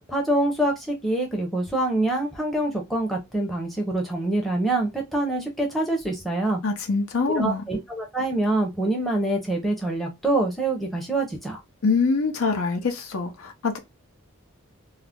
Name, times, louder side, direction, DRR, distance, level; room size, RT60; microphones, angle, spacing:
voice 1, 0.1-6.6 7.3-11.6, right 2 dB, ahead, 0.6 m, -25 dB
voice 2, 6.6-7.6 11.8-13.8, left 4 dB, 80° left, 0.7 m, -24 dB
2.4 x 2.0 x 3.5 m
head